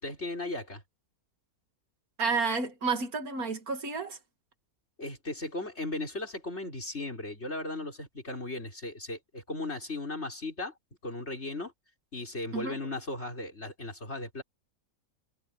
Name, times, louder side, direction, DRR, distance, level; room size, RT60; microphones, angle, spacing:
voice 1, 0.0-0.8 5.0-10.7 11.0-11.7 12.1-14.4, left 2 dB, 45° left, 5.5 m, -36 dB
voice 2, 2.2-4.2 12.5-12.8, right 4 dB, 70° right, 2.6 m, -30 dB
omnidirectional pair, 1.6 m